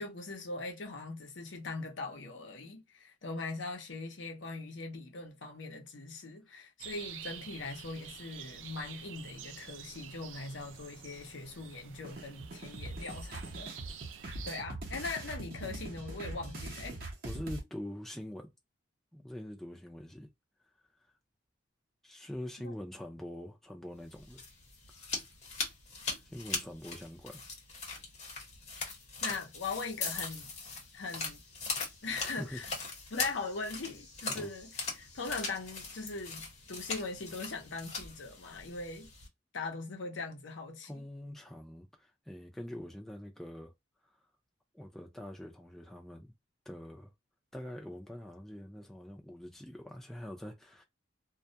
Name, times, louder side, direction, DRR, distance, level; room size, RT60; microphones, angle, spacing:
voice 1, 0.0-13.7 14.4-17.0 22.6-22.7 29.2-30.5 30.9-31.4 32.0-32.7 33.1-34.7 35.0-39.1 39.5-41.0, left 3 dB, 75° left, 0.7 m, -40 dB
sound 1, 6.8-14.6, right 8 dB, 85° right, 0.4 m, -48 dB
sound 2, 12.0-17.6, right 2 dB, 50° right, 0.7 m, -42 dB
voice 2, 17.2-18.5 19.1-20.3 21.0-21.1 22.0-24.4 24.9-25.1 26.2-27.4 32.2-32.6 34.3-34.5 40.8-43.7 44.0-44.3 44.7-46.3 46.7-47.1 47.5-50.8, equal, ahead, 0.4 m, -44 dB
sound 3, 24.1-39.3, left 4 dB, 35° left, 0.8 m, -40 dB
2.3 x 2.1 x 2.6 m
head